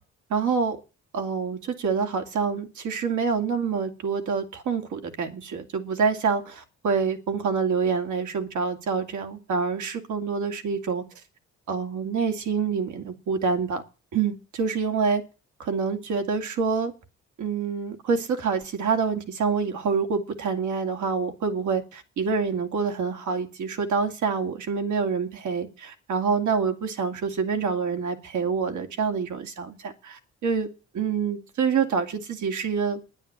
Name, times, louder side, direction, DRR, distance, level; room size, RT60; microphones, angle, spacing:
voice 1, 0.3-0.8 1.1-11.0 11.7-13.8 14.1-15.2 15.6-16.9 17.4-30.7 30.9-33.0, right 5 dB, 75° right, 5 dB, 2.6 m, -26 dB
10.5 x 9.8 x 9.9 m, 0.34 s
cardioid pair, 90°, 30 cm